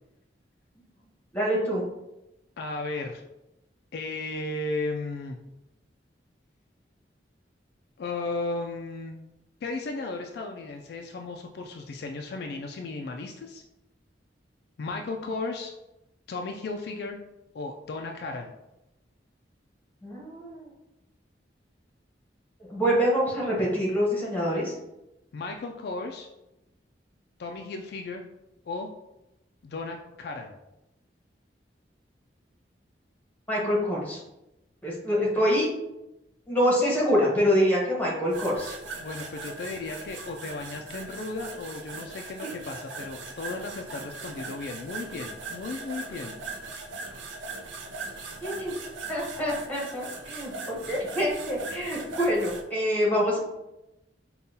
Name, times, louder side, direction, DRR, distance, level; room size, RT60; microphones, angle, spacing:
voice 1, 1.3-1.8 20.0-20.7 22.6-24.7 33.5-34.2 34.8-35.7 36.5-38.7 48.4-48.7 49.1-53.4, equal, 10° left, -4 dB, 1.0 m, -25 dB
voice 2, 2.6-3.2 3.9-5.4 8.0-9.2 9.6-13.6 14.8-15.7 16.3-17.2 17.5-18.5 25.3-26.3 27.4-28.3 28.6-28.9 29.6-30.6 39.0-46.4, left 3 dB, 60° left, 2 dB, 0.3 m, -35 dB
sound 1, 38.3-52.6, right 3 dB, 90° right, 0.5 m, -40 dB
5.2 x 2.3 x 2.7 m, 0.92 s
head